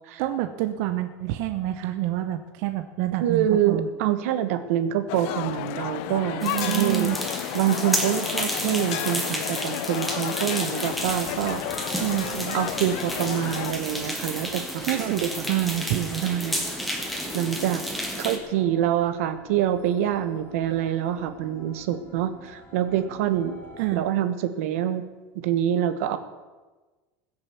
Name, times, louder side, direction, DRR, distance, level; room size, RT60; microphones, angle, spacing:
voice 1, 0.2-3.9 6.4-7.2 12.0-12.6 14.8-16.2 23.8-24.0, right 14 dB, 55° right, 8 dB, 0.8 m, -27 dB
voice 2, 3.2-7.1 7.5-11.6 12.5-15.4 16.2-16.8 17.3-17.8 18.2-23.5 23.9-25.0 25.4-26.2, right 11 dB, 85° right, 10 dB, 1.3 m, -26 dB
sound 1, 5.1-13.7, left 16 dB, 60° left, 0.5 m, -32 dB
sound 2, 6.4-18.4, equal, ahead, 1.5 m, -31 dB
sound 3, 10.8-23.9, equal, 20° left, 2.5 m, -46 dB
20.5 x 6.9 x 7.0 m, 1.2 s
cardioid pair, 175°, 7 cm